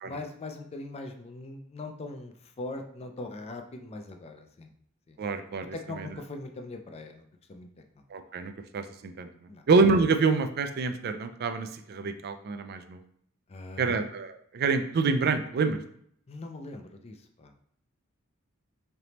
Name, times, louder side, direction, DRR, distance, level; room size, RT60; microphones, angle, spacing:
voice 1, 0.0-4.7 5.1-5.2 5.7-7.7 9.5-9.6 13.5-14.0 16.3-17.5, left 2 dB, 30° left, 5 dB, 0.4 m, -41 dB
voice 2, 5.2-6.1 8.1-9.3 9.7-13.0 13.8-15.8, right 4 dB, 45° right, 8 dB, 0.3 m, -27 dB
3.9 x 3.3 x 2.9 m, 0.66 s
head